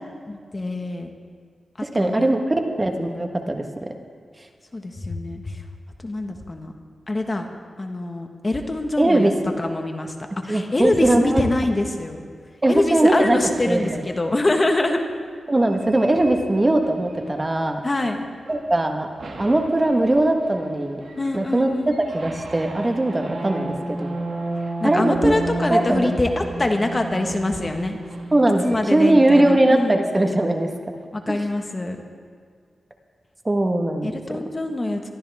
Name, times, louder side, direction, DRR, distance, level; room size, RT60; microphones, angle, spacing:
voice 1, 0.3-1.1 1.9-2.4 4.7-5.6 6.0-6.7 7.1-7.5 7.8-9.3 9.6-10.1 10.4-12.2 12.7-15.0 17.8-18.3 21.2-22.0 24.7-28.0 28.6-30.0 31.1-32.0 34.0-35.1, left 2 dB, 30° left, 4 dB, 1.5 m, -24 dB
voice 2, 1.8-3.9 9.0-9.5 10.5-11.4 12.6-13.4 13.7-14.0 15.5-17.8 18.5-19.1 19.4-21.0 21.3-24.1 24.8-25.4 25.7-26.1 28.3-30.9 31.3-31.4 33.4-34.4, right 1 dB, 25° right, 4 dB, 1.4 m, -20 dB
sound 1, 13.0-14.3 15.6-18.1 18.4-18.8 19.2-29.4, right 2 dB, 70° right, 2.3 m, -34 dB
23.0 x 13.5 x 3.6 m, 2.1 s
cardioid pair, 75°, 0 cm